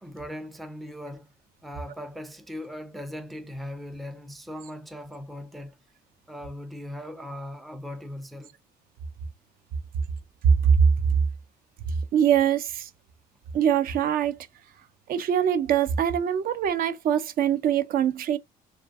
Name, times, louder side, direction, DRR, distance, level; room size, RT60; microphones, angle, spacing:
voice 1, 0.0-1.3 1.6-5.8 6.3-8.5, left 1 dB, ahead, 0.4 m, -39 dB
voice 2, 10.4-10.8 11.9-12.9 13.5-14.4 15.1-18.4, right 8 dB, 60° right, 0.4 m, -23 dB
2.5 x 2.4 x 2.3 m
cardioid pair, 110°, 17 cm